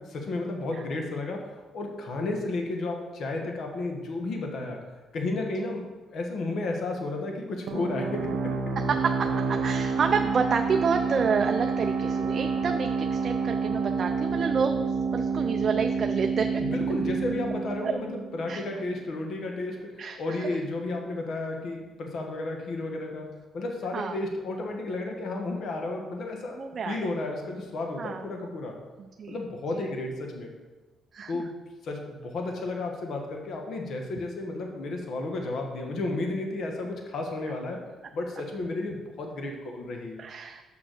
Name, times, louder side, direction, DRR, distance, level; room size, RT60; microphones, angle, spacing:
voice 1, 0.0-8.7 16.6-28.8 29.3-30.5 31.3-40.2, left 2 dB, 60° left, 2 dB, 1.3 m, -33 dB
sound 1, 7.7-19.0, right 5 dB, 90° right, 0.9 m, -29 dB
voice 2, 8.9-16.6 17.8-17.9 18.5-18.6 20.0-20.5 23.9-24.2 26.5-27.1 28.0-28.2 29.0-29.4 29.7-29.8 31.1-31.4 40.2-40.6, right 5 dB, 40° right, 5 dB, 0.5 m, -29 dB
6.6 x 5.4 x 6.4 m, 1.2 s
cardioid pair, 125°, 0 cm